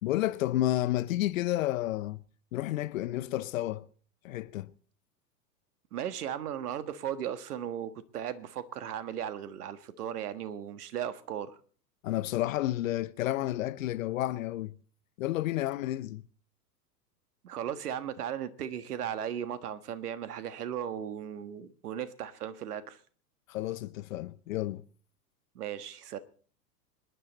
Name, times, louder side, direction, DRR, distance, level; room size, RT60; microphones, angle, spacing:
voice 1, 0.0-2.2 2.5-3.9 4.2-4.7 12.0-14.7 15.2-16.2 23.5-24.8, left 15 dB, 55° left, 0.8 m, -31 dB
voice 2, 5.9-11.5 17.4-23.0 25.5-26.2, right 9 dB, 65° right, 1.5 m, -36 dB
25.5 x 10.5 x 4.2 m
figure-of-eight pair, 100°, 49 cm